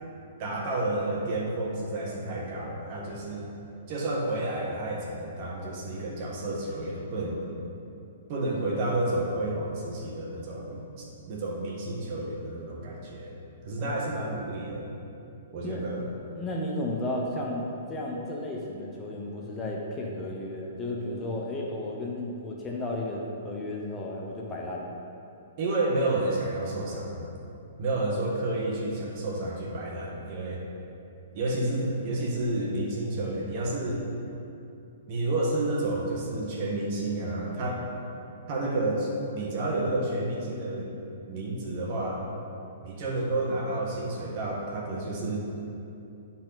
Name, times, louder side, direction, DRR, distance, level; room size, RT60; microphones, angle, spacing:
voice 1, 0.4-3.5 3.9-7.4 8.3-13.3 13.6-14.9 15.5-16.1 25.6-27.3 27.8-30.6 31.3-34.0 35.1-37.8 38.5-40.9 41.3-42.2 42.8-45.4, right 2 dB, 45° right, -2 dB, 1.5 m, -30 dB
voice 2, 16.3-24.9, left 1 dB, 15° left, -2 dB, 0.8 m, -33 dB
9.9 x 4.2 x 4.0 m, 2.7 s
hypercardioid pair, 145°, 0 cm